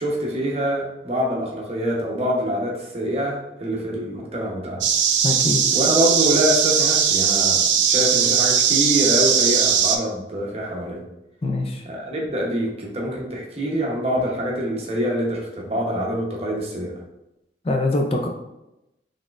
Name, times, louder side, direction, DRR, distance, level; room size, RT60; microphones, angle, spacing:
voice 1, 0.0-4.8 5.7-11.0 11.9-16.9, equal, 35° right, -2 dB, 0.8 m, -25 dB
sound 1, 4.8-10.0, right 7 dB, 85° right, 0.4 m, -19 dB
voice 2, 5.2-5.6 11.4-11.8 17.6-18.3, left 2 dB, 35° left, 2 dB, 0.4 m, -23 dB
4.1 x 3.3 x 2.4 m, 0.91 s
head